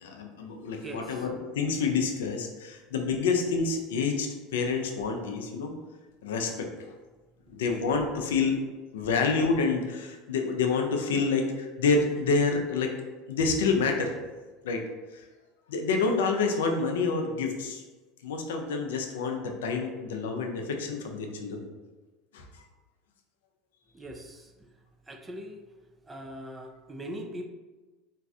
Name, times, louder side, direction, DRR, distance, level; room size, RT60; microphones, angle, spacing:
voice 1, 0.0-5.7 6.2-6.7 7.5-8.6 8.9-12.9 13.3-14.2 14.6-14.8 15.1-15.2 15.7-17.8 18.2-21.6 22.3-22.5, left 4 dB, 75° left, 3 dB, 0.4 m, -28 dB
voice 2, 0.8-1.3 23.9-24.7 25.1-25.7 26.1-27.5, equal, 20° right, 3 dB, 0.4 m, -41 dB
3.0 x 2.5 x 2.4 m, 1.2 s
hypercardioid pair, 75°, 0 cm